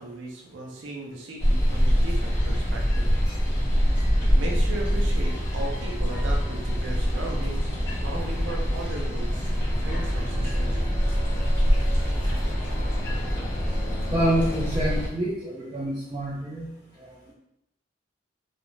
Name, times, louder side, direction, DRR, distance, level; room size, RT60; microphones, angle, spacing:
voice 1, 0.0-3.1 4.2-10.7, right 2 dB, 85° right, -1 dB, 0.5 m, -37 dB
sound 1, 1.4-15.1, equal, 15° left, 0.7 m, -24 dB
Bowed string instrument, 9.8-15.3, right 1 dB, 50° left, 0.5 m, -43 dB
voice 2, 14.1-16.7 17.0-17.3, right 1 dB, 25° right, -4 dB, 0.4 m, -27 dB
2.4 x 2.0 x 3.1 m, 0.81 s
head